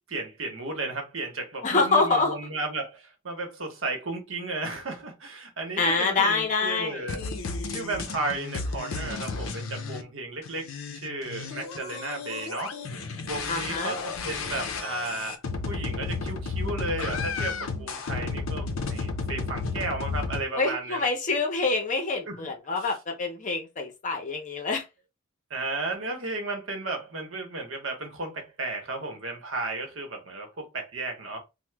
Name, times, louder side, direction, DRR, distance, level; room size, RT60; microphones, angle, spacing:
voice 1, 0.1-7.3 7.7-10.7 11.0-12.8 13.3-21.1 22.3-22.4 25.5-31.4, right 2 dB, 70° right, 0.9 m, -34 dB
voice 2, 1.6-2.4 5.8-7.1 13.5-14.0 20.5-24.8, left 3 dB, 40° left, 0.6 m, -26 dB
sound 1, 7.1-10.0 10.4-20.4, left 4 dB, 80° left, 0.5 m, -33 dB
2.9 x 2.1 x 3.3 m
head